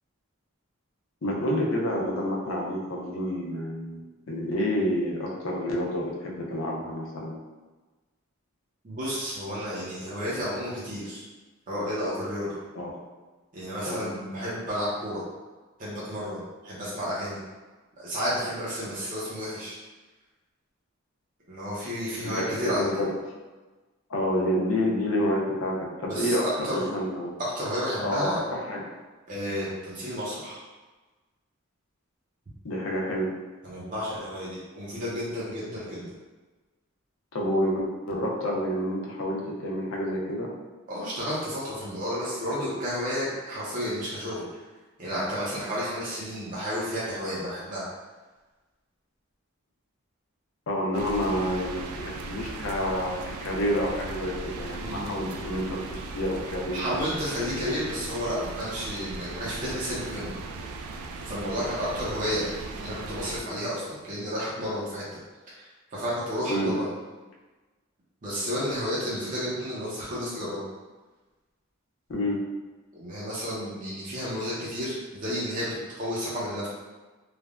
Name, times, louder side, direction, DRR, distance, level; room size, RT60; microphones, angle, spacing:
voice 1, 1.2-4.0 4.3-7.4 12.8-13.0 13.9-14.0 22.2-23.1 24.1-26.4 26.7-27.3 28.0-28.8 32.6-33.3 37.3-40.5 50.7-57.0 66.5-66.7 72.1-72.4, equal, 65° left, -2 dB, 0.5 m, -28 dB
voice 2, 8.8-11.2 11.7-12.5 13.5-15.2 15.8-17.4 18.0-19.8 21.5-23.0 26.0-26.9 27.4-28.4 29.3-30.6 33.6-36.1 40.9-44.6 45.0-47.9 54.8-55.2 56.7-60.3 61.3-65.0 65.5-65.7 65.9-66.9 68.2-70.6 72.9-76.7, equal, 35° right, -8 dB, 0.6 m, -31 dB
sound 1, 50.9-63.4, right 3 dB, 80° right, 0.3 m, -38 dB
3.3 x 2.1 x 2.3 m, 1.2 s
head